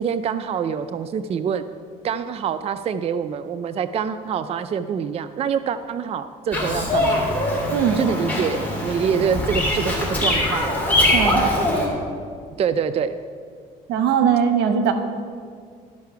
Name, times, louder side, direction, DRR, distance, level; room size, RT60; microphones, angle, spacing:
voice 1, 0.0-1.6 2.0-7.3 8.0-10.8 12.6-13.2, right 7 dB, 35° right, 11 dB, 0.4 m, -25 dB
Bird vocalization bird call bird song, 6.5-11.9, left 1 dB, 10° left, 3.0 m, -22 dB
voice 2, 7.7-8.1 11.1-11.5 13.9-14.9, right 7 dB, 85° right, 7 dB, 1.1 m, -20 dB
12.5 x 5.6 x 5.7 m, 2.2 s
cardioid pair, 110°, 17 cm